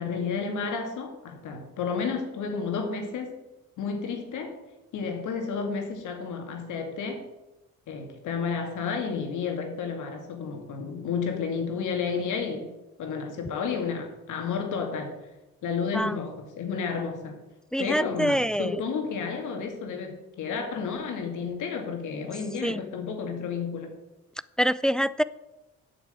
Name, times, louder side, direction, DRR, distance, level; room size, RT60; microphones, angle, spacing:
voice 1, 0.0-3.4 3.8-4.5 4.9-7.2 7.9-12.7 13.0-15.1 15.6-17.4 17.8-23.9, left 5 dB, 80° left, 3 dB, 2.5 m, -31 dB
voice 2, 17.7-18.8 22.6-22.8 24.6-25.2, equal, 5° left, 17 dB, 0.3 m, -25 dB
8.4 x 6.7 x 8.2 m, 1.0 s
cardioid pair, 90°, 30 cm